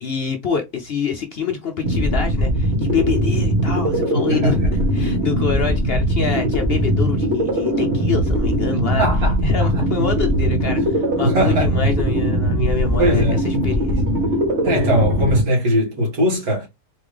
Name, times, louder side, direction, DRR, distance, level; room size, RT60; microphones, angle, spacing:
voice 1, 0.0-9.1 9.4-14.0, left 6 dB, 55° left, 0.7 m, -26 dB
sound 1, 1.8-15.4, equal, 50° right, 1.7 m, -20 dB
voice 2, 9.0-9.7 11.2-11.9 13.0-13.4 14.6-16.7, equal, 80° right, 2.3 m, -20 dB
4.1 x 3.7 x 3.3 m
omnidirectional pair, 1.5 m